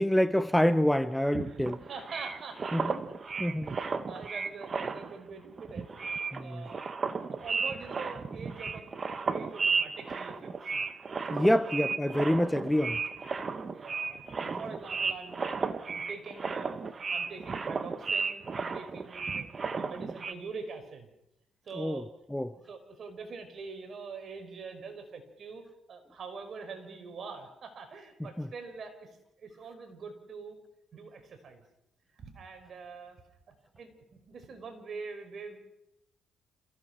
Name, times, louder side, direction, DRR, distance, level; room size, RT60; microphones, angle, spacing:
voice 1, 0.0-1.8 2.7-2.9 3.4-3.7 6.3-6.7 11.3-13.0 14.5-14.6 21.7-22.0 22.3-22.5 28.2-28.5, equal, 5° left, 0.9 m, -27 dB
sound 1, 1.3-5.3 5.6-20.3, right 4 dB, 40° right, 1.7 m, -34 dB
voice 2, 1.4-3.0 3.6-5.9 6.4-6.9 7.3-8.9 9.3-10.9 11.3-11.7 13.7-16.8 17.1-19.5 19.8-21.1 21.6-22.1 22.5-25.6 25.9-30.6 30.9-31.6 32.2-33.2 33.5-33.9 34.3-35.6, right 5 dB, 55° right, 5.2 m, -44 dB
29.0 x 16.0 x 6.1 m
cardioid pair, 90°, 0 cm